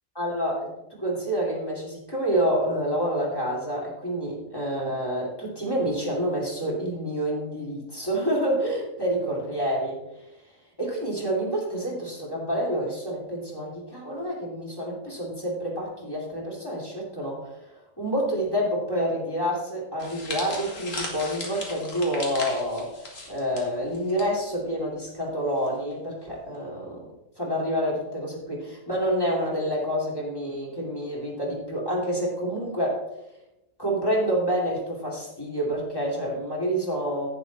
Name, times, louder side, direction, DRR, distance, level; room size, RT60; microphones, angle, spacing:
voice 1, 0.1-10.0 10.8-17.7 18.0-22.9 23.3-27.1 27.4-33.0 33.8-37.3, equal, 15° left, -4 dB, 2.8 m, -28 dB
sound 1, 20.0-24.3 24.5-24.8 25.6-25.9, left 2 dB, 60° left, 2.3 m, -37 dB
10.5 x 8.9 x 4.1 m, 0.92 s
omnidirectional pair, 1.6 m